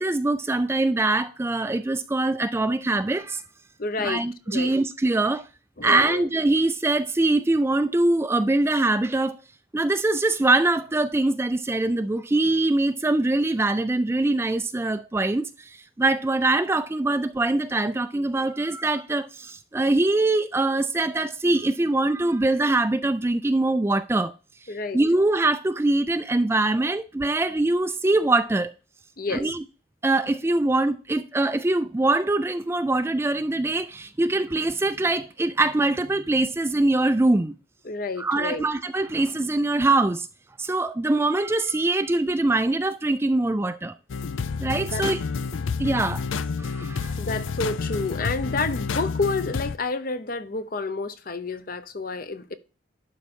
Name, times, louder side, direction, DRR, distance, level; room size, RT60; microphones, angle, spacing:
voice 1, 0.0-3.4 4.0-5.4 5.8-9.4 9.7-24.3 24.9-28.7 29.3-29.6 30.0-37.5 38.2-40.3 40.6-43.9 44.6-45.2 45.8-46.3 46.6-47.1, right 2 dB, 15° right, 0.3 m, -23 dB
voice 2, 3.8-4.7 5.8-6.2 24.7-25.0 29.2-29.5 37.8-38.7 44.8-45.0 47.2-52.6, left 3 dB, 45° left, 0.7 m, -29 dB
sound 1, 44.1-49.8, left 5 dB, 90° left, 0.5 m, -29 dB
11.5 x 4.8 x 4.3 m
head